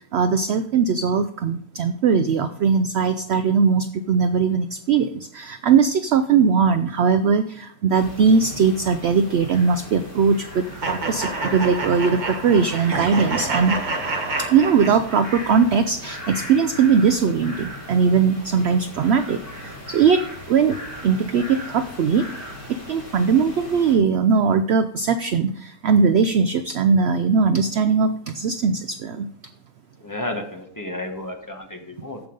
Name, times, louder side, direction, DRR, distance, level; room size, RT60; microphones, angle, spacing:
voice 1, 0.0-13.8 14.5-20.2 20.5-20.8 21.0-22.3 22.9-29.3, right 6 dB, 70° right, 11 dB, 0.6 m, -20 dB
sound 1, 7.9-23.9, left 1 dB, 45° left, 4.0 m, -38 dB
sound 2, 10.8-15.4, right 3 dB, 35° right, 1.2 m, -28 dB
voice 2, 30.0-32.2, left 1 dB, 15° left, 3 dB, 0.9 m, -32 dB
14.0 x 5.3 x 3.8 m, 0.65 s
omnidirectional pair, 1.6 m